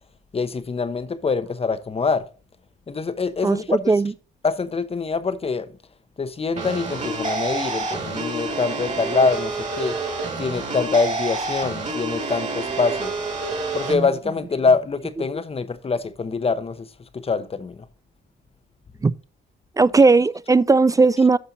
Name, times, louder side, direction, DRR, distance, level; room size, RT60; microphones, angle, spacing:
voice 1, 0.3-2.2 2.9-3.9 4.4-5.7 6.2-9.9 10.4-13.1 13.7-16.9 17.2-17.7, left 4 dB, 30° left, 0.9 m, -24 dB
voice 2, 3.4-4.1 13.9-14.1 19.0-19.1 19.8-21.4, right 3 dB, 15° right, 0.3 m, -17 dB
sound 1, 6.6-13.9, right 3 dB, 35° right, 2.5 m, -28 dB
13.0 x 4.4 x 4.0 m
cardioid pair, 90°, 20 cm